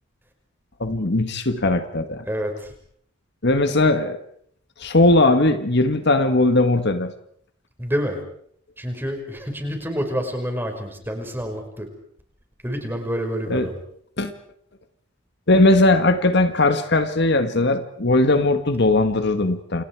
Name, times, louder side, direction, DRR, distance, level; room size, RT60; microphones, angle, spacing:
voice 1, 0.8-2.2 3.4-4.2 4.8-7.1 13.5-13.7 14.2-14.3 15.5-19.8, left 2 dB, 60° left, 9 dB, 1.8 m, -19 dB
voice 2, 2.3-2.7 7.8-8.2 8.8-11.9 12.6-13.8, equal, 10° right, 4 dB, 5.6 m, -28 dB
29.0 x 28.5 x 4.8 m, 0.64 s
head